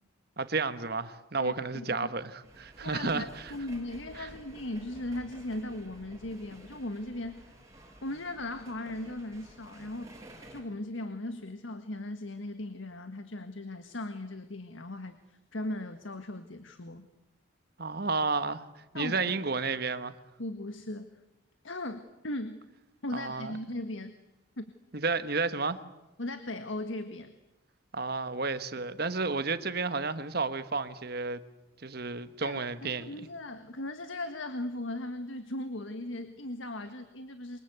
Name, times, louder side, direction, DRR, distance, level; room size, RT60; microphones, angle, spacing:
voice 1, 0.4-3.5 4.2-4.3 17.8-20.2 23.1-23.5 24.9-25.8 27.9-31.4 31.8-33.3, right 4 dB, 50° right, 1.4 m, -32 dB
voice 2, 1.4-2.1 2.8-7.4 8.0-10.2 10.5-15.2 15.5-17.1 18.9-19.2 20.4-21.2 21.6-22.7 23.0-24.2 24.6-24.7 26.2-27.3 32.4-37.6, left 1 dB, 75° left, 1.7 m, -38 dB
sound 1, 2.4-10.6, right 1 dB, 15° right, 5.9 m, -52 dB
28.0 x 24.0 x 8.2 m
head